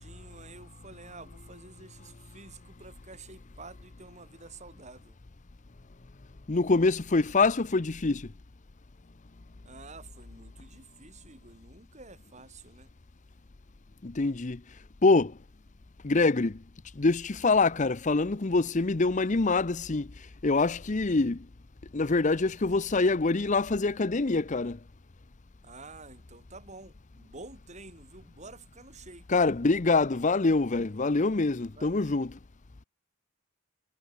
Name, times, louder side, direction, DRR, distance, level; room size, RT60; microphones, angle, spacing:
voice 1, 0.0-5.2 9.6-12.9 17.7-18.0 25.6-29.3 31.7-32.2, right 3 dB, 30° right, 7.1 m, -49 dB
voice 2, 6.5-8.3 14.0-14.6 15.0-15.4 16.0-16.6 16.9-20.1 20.4-21.5 21.9-24.8 29.3-32.4, left 3 dB, 35° left, 0.7 m, -25 dB
head